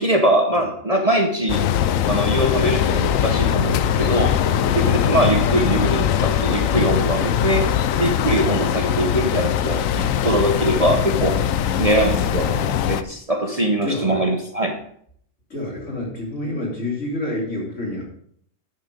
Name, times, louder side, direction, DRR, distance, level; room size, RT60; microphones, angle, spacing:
voice 1, 0.0-1.6 2.1-4.4 4.7-11.4 11.8-14.8, right 1 dB, 30° right, 3 dB, 0.9 m, -22 dB
sound 1, 1.5-13.0, left 9 dB, 85° left, 1.0 m, -21 dB
voice 2, 13.8-14.2 15.5-18.0, left 1 dB, 65° left, -3 dB, 3.5 m, -29 dB
9.5 x 6.5 x 5.1 m, 0.64 s
omnidirectional pair, 1.3 m